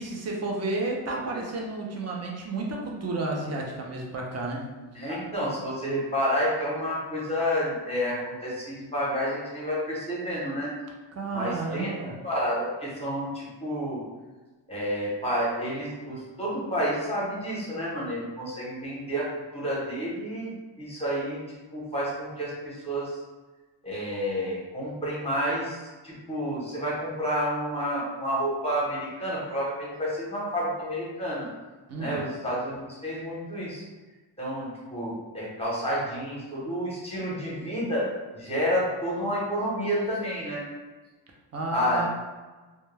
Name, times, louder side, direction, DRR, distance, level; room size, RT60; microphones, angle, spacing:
voice 1, 0.0-4.7 11.1-12.2 31.9-32.2 41.5-42.1, right 2 dB, 35° right, -1 dB, 0.5 m, -31 dB
voice 2, 4.9-10.7 11.3-11.9 12.2-14.0 14.7-19.3 19.5-21.4 21.7-23.2 23.8-31.5 32.0-33.8 34.4-38.1 38.3-40.6 41.7-42.1, equal, 15° left, -6 dB, 0.8 m, -30 dB
2.1 x 2.1 x 3.2 m, 1.3 s
wide cardioid pair, 130°, 46 cm